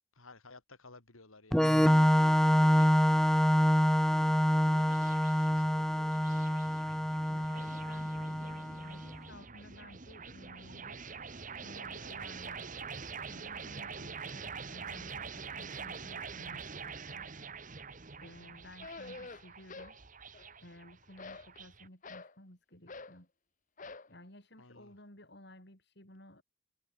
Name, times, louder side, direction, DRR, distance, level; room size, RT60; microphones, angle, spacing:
voice 1, 0.1-2.9 3.9-6.6 24.6-24.9, left 3 dB, 80° left, 3.0 m, -54 dB
Organ, 1.5-9.0, equal, ahead, 0.4 m, -26 dB
sound 1, 3.2-21.9, right 5 dB, 40° right, 1.5 m, -46 dB
voice 2, 7.3-11.0 11.5-12.8 13.3-17.3 18.2-20.0 20.6-23.3 24.1-26.4, left 1 dB, 55° left, 6.7 m, -55 dB
sound 2, 18.8-20.0 20.3-20.8 21.2-22.3 22.9-23.2 23.8-24.1, left 3 dB, 40° left, 1.0 m, -47 dB
head